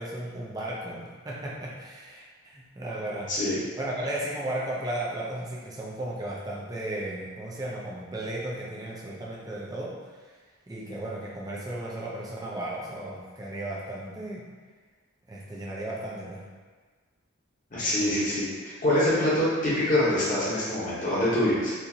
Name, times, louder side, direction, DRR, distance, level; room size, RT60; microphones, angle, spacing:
voice 1, 0.0-3.3 3.8-10.0 10.7-14.5 15.3-16.4, right 1 dB, 15° right, -5 dB, 0.5 m, -35 dB
voice 2, 17.7-21.7, left 1 dB, 35° left, -9 dB, 1.0 m, -25 dB
4.4 x 2.6 x 2.7 m, 1.4 s
head